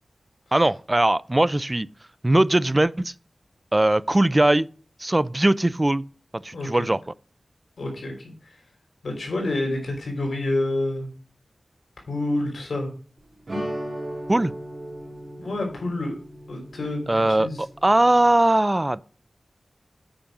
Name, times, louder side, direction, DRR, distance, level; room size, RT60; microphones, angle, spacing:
voice 1, 0.5-1.9 2.2-3.1 3.7-4.7 5.0-6.0 6.3-7.0 14.3-14.5 17.1-19.0, right 1 dB, 25° right, 0.4 m, -20 dB
voice 2, 7.8-8.3 9.0-11.1 12.1-12.9 15.4-16.1 16.5-17.6, left 2 dB, 85° left, 3.6 m, -28 dB
sound 1, 13.5-18.3, equal, 55° right, 4.0 m, -36 dB
8.7 x 5.2 x 6.1 m
wide cardioid pair, 60°, 0 cm